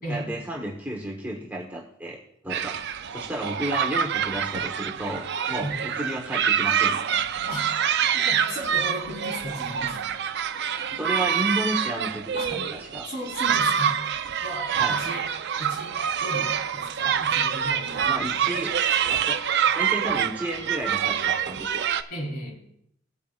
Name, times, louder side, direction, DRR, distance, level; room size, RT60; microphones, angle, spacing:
voice 1, 0.1-2.8 3.1-7.4 11.0-13.1 14.8-15.0 18.1-18.7 19.0-19.4 19.7-21.9, right 1 dB, 10° right, -2 dB, 1.1 m, -32 dB
Kids playing school, 2.5-22.0, right 8 dB, 60° right, 0.6 m, -26 dB
voice 2, 7.5-10.1 10.9-11.0 12.3-12.6 13.1-15.3 15.6-18.6 22.1-22.6, equal, 50° left, -1 dB, 3.7 m, -36 dB
18.5 x 8.1 x 2.4 m, 0.72 s
head